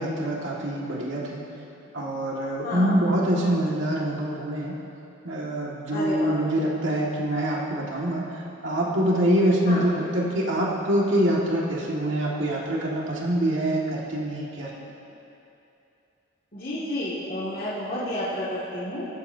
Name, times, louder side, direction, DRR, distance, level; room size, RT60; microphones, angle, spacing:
voice 1, 0.0-1.4 1.9-4.7 5.2-14.7, right 1 dB, 70° right, -4 dB, 1.9 m, -25 dB
voice 2, 2.6-3.0 5.9-6.4 9.7-9.9 16.5-19.1, left 1 dB, 45° left, -10 dB, 2.2 m, -30 dB
21.5 x 14.5 x 2.8 m, 2.8 s
head